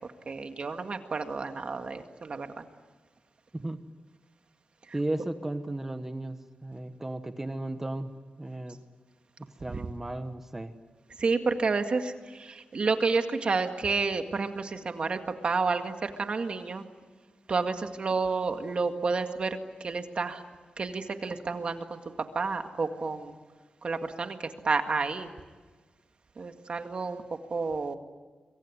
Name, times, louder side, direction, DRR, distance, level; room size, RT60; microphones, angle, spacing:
voice 1, 0.3-2.6 4.9-5.0 11.2-16.8 17.5-20.4 20.8-22.0 22.4-23.4 23.8-25.3 26.4-27.2 27.5-28.0, right 4 dB, 45° right, 6 dB, 1.9 m, -30 dB
voice 2, 4.9-8.1 8.4-8.8 9.6-10.7, right 1 dB, 15° right, 8 dB, 1.1 m, -35 dB
26.5 x 23.5 x 9.7 m, 1.4 s
wide cardioid pair, 165°, 3 cm